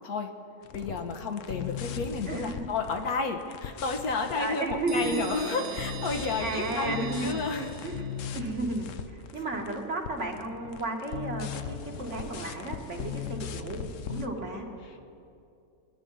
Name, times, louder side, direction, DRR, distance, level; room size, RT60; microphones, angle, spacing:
sound 1, 0.6-9.8 10.0-14.3, left 7 dB, 65° left, 1.0 m, -39 dB
voice 1, 0.7-7.7 14.8-15.1, left 4 dB, 80° left, 3 dB, 1.7 m, -32 dB
voice 2, 2.3-2.7 4.3-5.2 6.4-7.4 7.8-8.0 8.3-13.8 14.1-14.7, right 2 dB, 55° right, 1 dB, 2.0 m, -33 dB
sound 2, 4.9-8.4, right 8 dB, 90° right, 1.2 m, -41 dB
22.5 x 10.0 x 5.5 m, 2.6 s
omnidirectional pair, 1.5 m